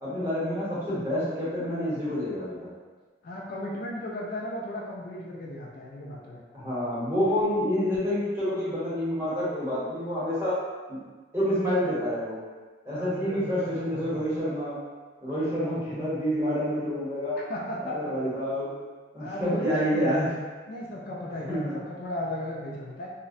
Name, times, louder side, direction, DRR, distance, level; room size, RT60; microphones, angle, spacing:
voice 1, 0.0-2.6 6.5-10.6 10.9-11.0 11.3-12.3 12.9-14.8 15.2-17.4 17.8-18.7 19.1-20.3 21.5-21.7, equal, 15° right, -10 dB, 0.8 m, -28 dB
voice 2, 3.2-6.4 12.9-14.3 17.4-18.1 19.2-20.0 20.7-23.1, left 1 dB, 50° left, -4 dB, 0.3 m, -36 dB
2.4 x 2.0 x 2.5 m, 1.4 s
head